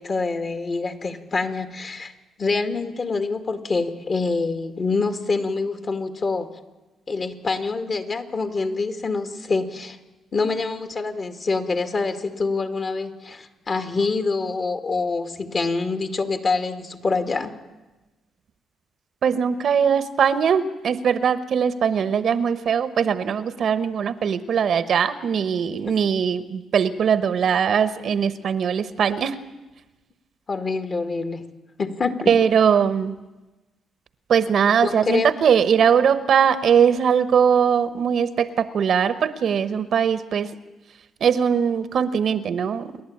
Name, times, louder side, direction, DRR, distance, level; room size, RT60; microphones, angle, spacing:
voice 1, 0.0-2.1 2.4-6.5 7.1-10.0 10.3-17.5 25.9-26.0 30.5-31.4 31.8-32.3 34.8-35.3, left 3 dB, 40° left, 8 dB, 2.0 m, -25 dB
voice 2, 19.2-29.4 32.3-33.1 34.3-40.5 41.2-43.0, right 7 dB, 60° right, 14 dB, 1.0 m, -20 dB
28.0 x 11.5 x 8.7 m, 1.1 s
cardioid pair, 90°, 0 cm